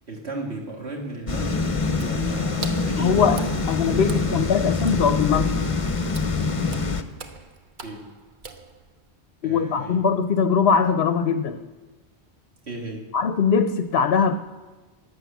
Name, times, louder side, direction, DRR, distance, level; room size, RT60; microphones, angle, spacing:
voice 1, 0.1-1.7 2.0-3.5 3.9-4.5 7.8-8.1 9.4-10.0 12.6-13.1, right 2 dB, 70° right, 0 dB, 2.2 m, -35 dB
sound 1, 1.3-7.0, left 4 dB, 30° left, 0.9 m, -25 dB
Water / Splash splatter, 2.0-9.1, right 4 dB, 45° right, 1.1 m, -43 dB
voice 2, 3.0-3.4 3.7-5.6 9.4-11.6 13.1-14.4, left 6 dB, 65° left, 9 dB, 0.9 m, -21 dB
12.0 x 11.0 x 8.3 m, 1.2 s
omnidirectional pair, 1.1 m